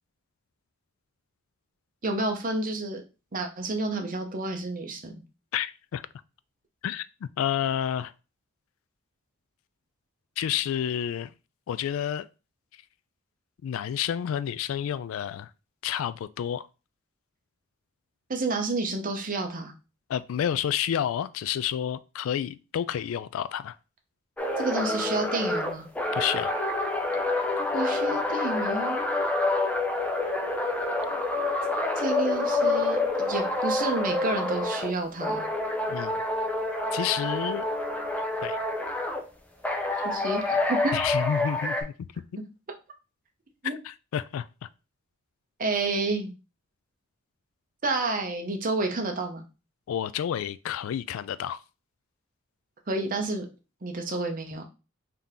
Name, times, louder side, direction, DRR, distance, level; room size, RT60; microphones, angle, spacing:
voice 1, 2.0-3.0 3.3-5.2 18.3-19.7 24.6-25.9 27.7-29.0 32.0-35.5 40.0-41.0 43.6-43.8 45.6-46.3 47.8-49.4 52.9-53.5 53.8-54.6, right 2 dB, 40° right, 0.8 m, -30 dB
voice 2, 5.5-6.0 6.8-8.1 10.4-11.3 11.7-12.3 13.6-15.5 15.8-16.7 20.1-23.8 26.1-26.6 35.9-36.2 36.9-37.7 38.4-38.6 40.9-41.9 43.6-44.7 49.9-51.6, left 9 dB, 80° left, 0.3 m, -30 dB
sound 1, 24.4-34.9 35.2-39.2 39.6-41.8, left 2 dB, 5° left, 0.5 m, -27 dB
3.7 x 2.8 x 3.6 m
head